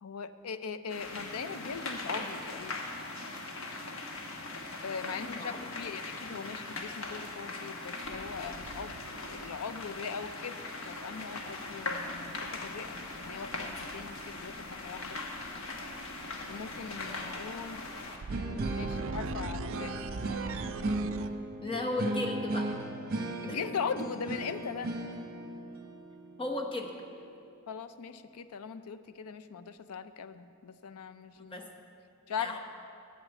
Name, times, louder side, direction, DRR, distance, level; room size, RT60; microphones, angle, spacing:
voice 1, 0.0-2.8 4.8-9.0 9.3-15.2 16.5-17.9 18.7-20.0 23.4-25.0 27.7-31.7 32.3-32.6, left 6 dB, 85° left, 12 dB, 0.5 m, -40 dB
sound 1, 0.9-18.2, left 2 dB, 65° left, 1.1 m, -40 dB
voice 2, 5.0-5.6 21.6-22.7 23.5-23.6 26.4-26.9 31.4-31.6 32.4-32.6, left 2 dB, 25° left, 2 dB, 1.0 m, -35 dB
sound 2, 6.6-6.8 8.0-10.2 12.0-21.3, right 4 dB, 60° right, 0.4 m, -43 dB
sound 3, 18.3-27.2, right 2 dB, 45° right, 0.9 m, -36 dB
8.9 x 8.4 x 7.2 m, 2.5 s
head